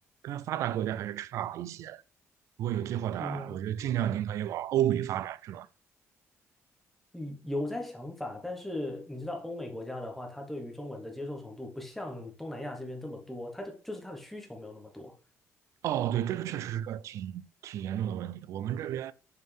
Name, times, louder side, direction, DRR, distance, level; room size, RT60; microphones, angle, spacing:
voice 1, 0.2-2.0 2.6-5.7 15.8-19.1, right 11 dB, 70° right, 0.3 m, -32 dB
voice 2, 3.2-3.6 7.1-15.1, left 1 dB, 5° left, 1.3 m, -38 dB
6.4 x 4.5 x 3.4 m
cardioid pair, 155°, 5 cm